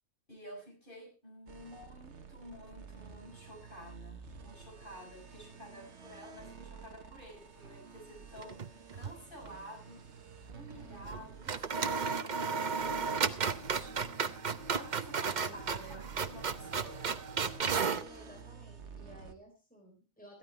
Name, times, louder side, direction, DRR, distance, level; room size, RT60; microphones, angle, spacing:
voice 1, 0.3-10.2 10.5-14.0 14.5-17.2, equal, 35° left, 0 dB, 6.6 m, -51 dB
sound 1, 1.5-19.3, right 6 dB, 55° right, 1.6 m, -51 dB
sound 2, 8.4-9.2 9.5-9.6 11.0-11.2 11.5-18.1, right 5 dB, 40° right, 0.8 m, -34 dB
voice 2, 15.4-16.0 18.0-20.4, right 1 dB, 5° left, 0 dB, 4.0 m, -54 dB
14.5 x 13.0 x 4.5 m, 0.33 s
omnidirectional pair, 1.4 m